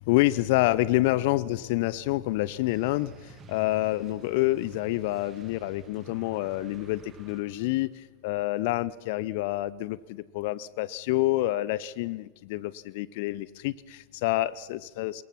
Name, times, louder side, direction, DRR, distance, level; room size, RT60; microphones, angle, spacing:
voice 1, 0.1-15.2, left 17 dB, 55° left, 20 dB, 0.6 m, -28 dB
sound 1, 2.7-7.8, right 6 dB, 30° right, 1.9 m, -51 dB
26.0 x 21.5 x 5.9 m, 1.3 s
figure-of-eight pair, 80°, 0 cm